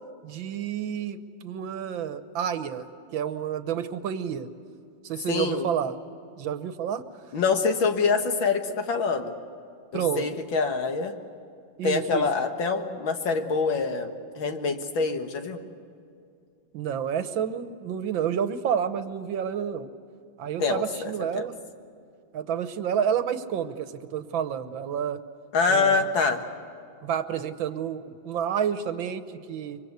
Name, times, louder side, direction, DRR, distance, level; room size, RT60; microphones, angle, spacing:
voice 1, 0.2-2.9 3.1-4.5 5.0-6.0 6.4-7.0 9.9-10.3 11.8-12.3 16.7-19.9 20.4-21.5 22.3-25.2 25.7-26.1 27.0-29.8, right 8 dB, 80° right, 11 dB, 1.7 m, -29 dB
voice 2, 5.3-5.7 7.3-9.3 9.9-11.2 11.8-15.6 20.6-21.5 25.5-26.4, left 4 dB, 85° left, 5 dB, 2.3 m, -25 dB
24.5 x 24.0 x 8.1 m, 2.5 s
omnidirectional pair, 2.1 m